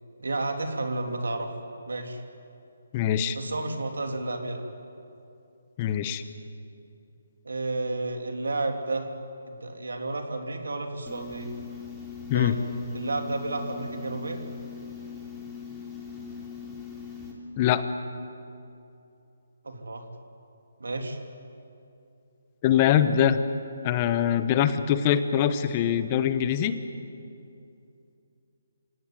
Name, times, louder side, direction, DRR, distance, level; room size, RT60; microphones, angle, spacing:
voice 1, 0.2-1.5 1.9-2.2 3.3-4.6 7.4-9.1 9.4-11.5 12.3-12.6 12.9-14.4 19.6-20.0 20.8-21.2, right 2 dB, 85° right, 4 dB, 3.3 m, -31 dB
voice 2, 2.9-3.4 5.8-6.2 12.3-12.6 17.6-17.8 22.6-23.4 23.8-26.8, left 10 dB, 25° left, 11 dB, 1.1 m, -23 dB
sound 1, 11.1-17.3, left 6 dB, ahead, 3.4 m, -40 dB
26.5 x 17.5 x 9.3 m, 2.7 s
hypercardioid pair, 160°, 0 cm